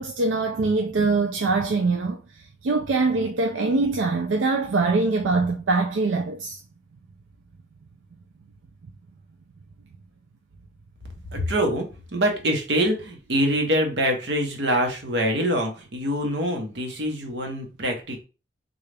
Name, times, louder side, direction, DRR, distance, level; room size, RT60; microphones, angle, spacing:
voice 1, 0.0-2.2 2.6-6.6, right 3 dB, 90° right, 0.4 m, -23 dB
voice 2, 11.3-11.9 12.1-18.2, equal, 70° right, 1.0 m, -24 dB
3.8 x 2.4 x 3.3 m
head